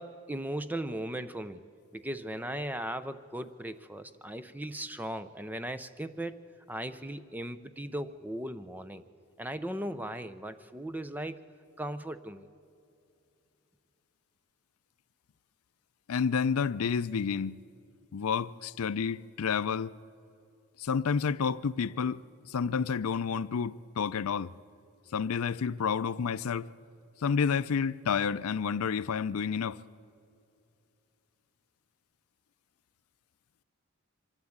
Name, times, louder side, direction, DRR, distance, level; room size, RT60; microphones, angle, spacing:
voice 1, 0.0-1.6 1.9-6.4 6.7-9.0 9.4-11.4 11.8-12.5, right 1 dB, 10° right, 0.5 m, -37 dB
voice 2, 16.1-17.6 18.1-19.9 20.8-22.2 22.5-24.5 25.1-26.7 27.2-29.8, left 6 dB, 80° left, 0.4 m, -30 dB
24.5 x 13.5 x 8.7 m
head